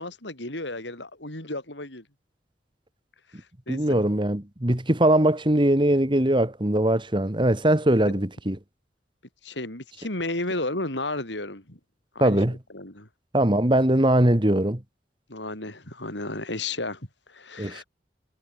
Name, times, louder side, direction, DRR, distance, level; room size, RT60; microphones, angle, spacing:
voice 1, 0.0-2.0 3.3-4.0 8.0-8.1 9.4-11.8 12.1-12.4 12.7-13.1 15.3-17.8, left 2 dB, 80° left, 7.7 m, -33 dB
voice 2, 3.7-8.6 12.2-12.6 13.3-14.8 17.6-17.8, right 1 dB, 25° right, 1.9 m, -21 dB
head